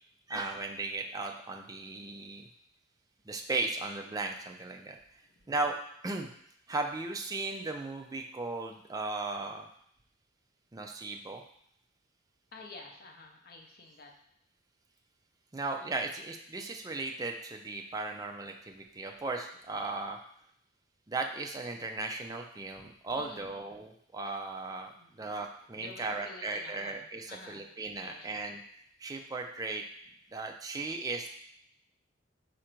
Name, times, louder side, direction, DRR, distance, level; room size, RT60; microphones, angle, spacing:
voice 1, 0.3-2.5 3.3-5.0 5.5-5.7 6.0-6.3 6.7-9.7 10.7-11.4 15.5-20.2 21.1-28.6 29.0-29.8 30.3-31.3, right 3 dB, 20° right, 3 dB, 0.4 m, -36 dB
voice 2, 5.2-5.5 12.5-14.1 23.1-23.6 24.9-25.2 25.7-27.7 28.0-28.4, left 3 dB, 50° left, 2 dB, 0.6 m, -50 dB
4.4 x 2.6 x 4.4 m, 0.69 s
head